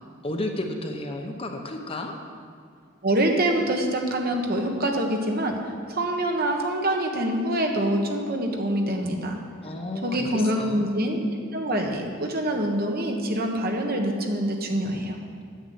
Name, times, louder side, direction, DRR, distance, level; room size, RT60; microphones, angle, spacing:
voice 1, 0.2-2.1 9.6-10.8, left 1 dB, 30° left, 3 dB, 1.0 m, -32 dB
voice 2, 3.0-5.6 5.9-9.4 10.0-11.2 11.5-15.2, right 1 dB, 50° right, 3 dB, 1.4 m, -25 dB
9.5 x 8.0 x 7.9 m, 2.1 s
head